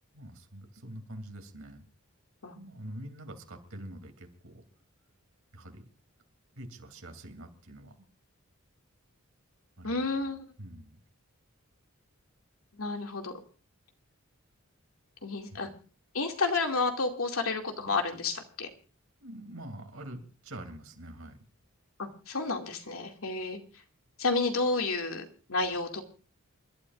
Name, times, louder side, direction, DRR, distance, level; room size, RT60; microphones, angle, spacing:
voice 1, 0.1-1.8 2.5-4.6 5.5-5.8 6.5-8.1 9.8-10.0 10.6-11.0 15.5-15.8 19.2-21.4, right 1 dB, 75° right, 6 dB, 3.0 m, -45 dB
voice 2, 9.8-10.4 12.8-13.4 15.2-15.7 16.1-18.7 22.0-23.6 24.2-26.0, left 3 dB, 90° left, 3 dB, 2.5 m, -31 dB
28.5 x 12.5 x 2.5 m, 0.37 s
head